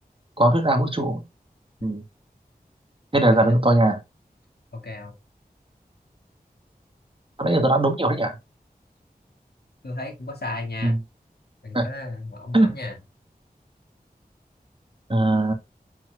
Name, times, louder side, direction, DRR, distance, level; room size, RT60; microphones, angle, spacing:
voice 1, 0.4-1.2 1.8-2.0 3.1-4.0 7.4-8.4 10.8-11.0 11.7-11.9 12.5-12.7 15.1-15.5, right 1 dB, 35° right, 1.7 m, -20 dB
voice 2, 3.3-3.6 4.7-5.2 9.8-11.0 11.6-13.0, left 2 dB, 90° left, 2.1 m, -34 dB
7.2 x 5.7 x 2.5 m
wide cardioid pair, 45°, 16 cm